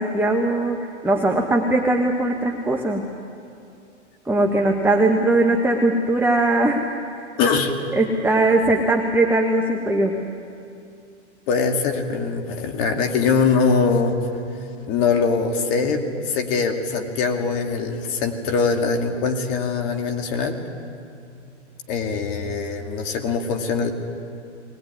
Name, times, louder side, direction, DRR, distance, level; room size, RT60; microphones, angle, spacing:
voice 1, 0.0-3.2 4.3-6.8 8.0-10.3, right 2 dB, 5° right, 1 dB, 1.3 m, -20 dB
voice 2, 7.4-7.7 11.5-14.2 14.9-20.6 21.9-23.9, left 5 dB, 40° left, 4 dB, 2.5 m, -22 dB
20.5 x 20.0 x 9.6 m, 2.5 s
hypercardioid pair, 120°, 35 cm